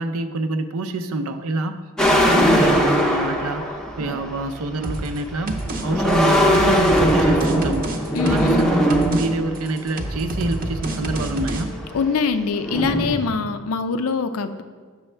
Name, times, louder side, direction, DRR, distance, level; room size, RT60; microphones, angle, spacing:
voice 1, 0.0-1.8 2.1-7.9 8.2-11.8, right 2 dB, 80° right, 8 dB, 0.5 m, -27 dB
sound 1, 2.0-4.6 5.4-9.5 10.3-10.6 10.9-12.1 12.6-13.3, equal, 5° left, 0.6 m, -20 dB
voice 2, 2.4-2.8 8.1-8.7 11.9-14.6, left 4 dB, 80° left, 9 dB, 0.5 m, -23 dB
sound 2, 4.8-5.2 5.5-5.8 6.1-8.6 8.9-9.3 9.6-11.6, right 1 dB, 40° right, 0.7 m, -28 dB
8.2 x 6.2 x 3.3 m, 1.5 s
head